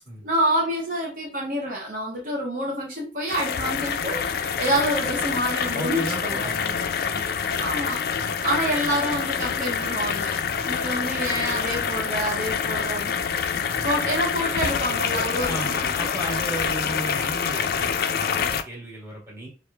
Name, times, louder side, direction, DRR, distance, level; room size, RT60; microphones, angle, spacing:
voice 1, 0.2-6.5 7.6-8.0 8.4-10.3 10.6-13.1 13.5-15.7 16.0-16.1, equal, 50° right, -2 dB, 0.6 m, -27 dB
sound 1, 3.3-18.6, left 7 dB, 55° left, 0.3 m, -26 dB
voice 2, 5.7-7.5 8.1-8.3 10.5-10.6 13.7-14.1 15.4-19.5, right 1 dB, 15° right, -5 dB, 1.4 m, -35 dB
4.7 x 2.4 x 2.3 m, 0.35 s
head